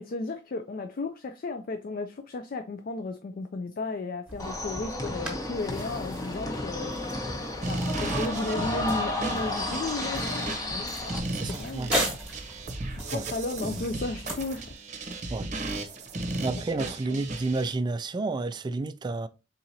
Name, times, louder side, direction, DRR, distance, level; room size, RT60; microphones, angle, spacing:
voice 1, 0.0-6.9 7.7-10.9 11.5-12.2 13.0-14.8 16.8-17.2, left 3 dB, 45° left, 0.4 m, -34 dB
sound 1, 4.3-14.7, equal, 5° right, 1.4 m, -38 dB
sound 2, 4.4-11.2, left 1 dB, 20° left, 0.9 m, -33 dB
sound 3, 7.6-17.7, right 2 dB, 40° right, 0.8 m, -35 dB
voice 2, 11.3-11.9 13.1-13.3 15.3-15.5 16.4-19.3, right 3 dB, 25° right, 0.3 m, -30 dB
4.5 x 3.7 x 2.7 m
head